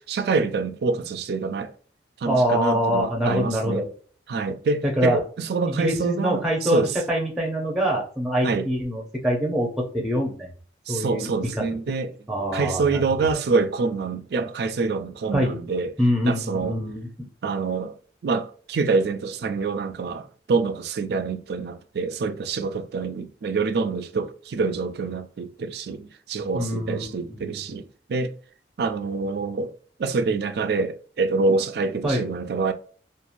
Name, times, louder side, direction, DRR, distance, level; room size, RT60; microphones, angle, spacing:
voice 1, 0.0-1.7 2.2-3.9 4.3-7.0 8.4-8.7 10.9-12.2 12.5-15.9 16.3-16.8 17.4-18.0 18.2-28.3 28.8-29.7 30.0-32.7, right 4 dB, 60° right, 0.3 m, -26 dB
voice 2, 2.2-3.8 5.0-5.2 5.7-6.8 7.1-9.7 9.9-10.5 10.9-11.3 12.3-13.3 15.3-15.6 16.0-17.3 26.5-27.5 32.0-32.3, equal, ahead, 0.6 m, -24 dB
2.9 x 2.4 x 2.5 m
head